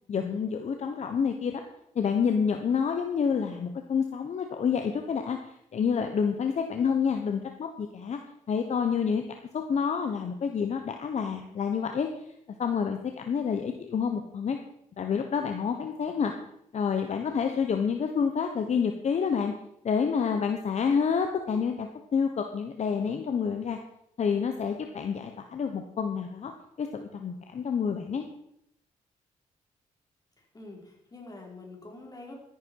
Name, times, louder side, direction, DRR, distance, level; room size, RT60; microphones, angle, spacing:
voice 1, 0.1-1.6 1.9-8.2 8.5-9.2 9.5-12.2 12.6-14.6 15.0-16.3 16.7-19.5 19.8-23.8 24.2-26.5 26.8-28.2, left 6 dB, 55° left, 5 dB, 1.2 m, -28 dB
voice 2, 30.4-32.3, left 2 dB, 30° left, 0 dB, 4.5 m, -46 dB
13.5 x 11.0 x 4.8 m, 0.77 s
cardioid pair, 100°, 14 cm